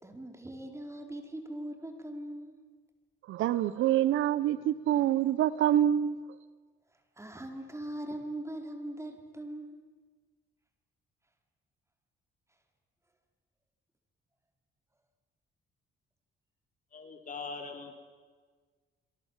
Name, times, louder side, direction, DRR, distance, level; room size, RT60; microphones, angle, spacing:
voice 1, 0.0-2.6 7.2-9.8, right 1 dB, 15° right, 5 dB, 4.5 m, -40 dB
voice 2, 3.3-6.2, right 11 dB, 85° right, 17 dB, 1.1 m, -26 dB
voice 3, 16.9-17.9, left 4 dB, 40° left, 5 dB, 5.1 m, -41 dB
29.5 x 22.5 x 7.5 m, 1.5 s
cardioid pair, 90°, 20 cm